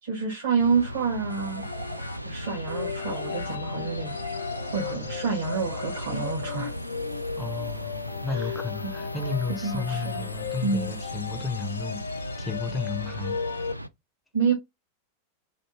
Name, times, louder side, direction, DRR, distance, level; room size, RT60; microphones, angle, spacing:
voice 1, 0.0-1.6 2.2-4.2 4.7-6.7 8.2-8.5 8.8-8.9 9.6-10.3 10.6-10.9 14.3-14.5, right 5 dB, 60° right, 1.4 m, -28 dB
sound 1, 0.6-13.9, equal, 90° right, 0.3 m, -37 dB
sound 2, 1.3-6.8, equal, 90° left, 0.7 m, -41 dB
sound 3, 2.4-13.7, left 7 dB, 70° left, 0.4 m, -36 dB
voice 2, 7.4-12.0 12.4-13.4, left 4 dB, 5° left, 0.6 m, -33 dB
3.4 x 2.6 x 2.9 m
figure-of-eight pair, 90°, 0 cm